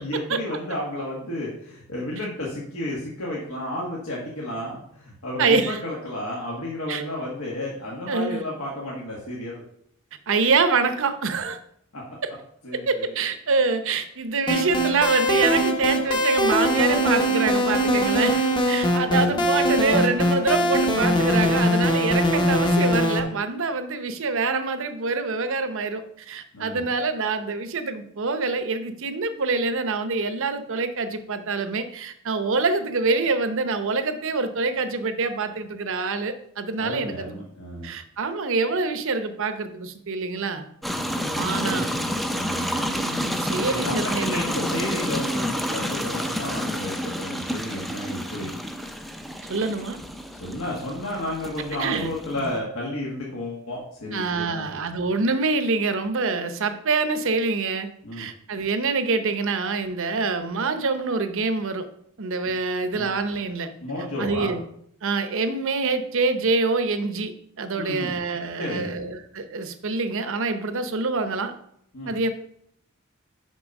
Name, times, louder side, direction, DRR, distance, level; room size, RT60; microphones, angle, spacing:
voice 1, 0.0-9.6 11.9-12.0 12.6-13.0 19.1-19.4 26.5-26.9 36.8-37.9 40.9-42.7 43.7-48.6 50.3-54.7 58.0-58.2 62.9-63.1 63.8-64.5 67.8-68.1 68.6-68.9 71.9-72.1, left 1 dB, 75° left, -4 dB, 1.6 m, -32 dB
voice 2, 5.4-5.8 6.9-7.0 8.1-8.5 10.3-11.6 12.7-37.5 37.8-40.7 41.3-41.9 42.7-44.6 49.5-50.0 51.8-52.5 54.1-61.9 62.2-63.7 64.2-64.6 65.0-71.5 72.1-72.3, right 4 dB, 65° right, 10 dB, 0.8 m, -25 dB
sound 1, 14.5-23.2, equal, 20° left, 0.9 m, -22 dB
sound 2, 40.8-52.6, equal, ahead, 0.4 m, -29 dB
6.2 x 5.6 x 5.2 m, 0.69 s
head